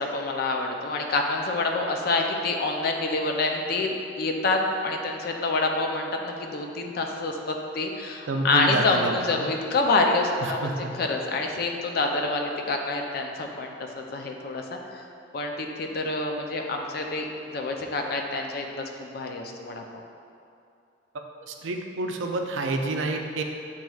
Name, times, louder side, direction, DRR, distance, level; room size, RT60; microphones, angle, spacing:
voice 1, 0.0-15.0 15.3-17.3 17.5-19.8, left 3 dB, 55° left, 2 dB, 0.4 m, -27 dB
voice 2, 8.3-9.5 10.4-11.0 21.5-23.4, right 2 dB, 85° right, 3 dB, 0.4 m, -29 dB
7.6 x 3.0 x 2.3 m, 2.5 s
head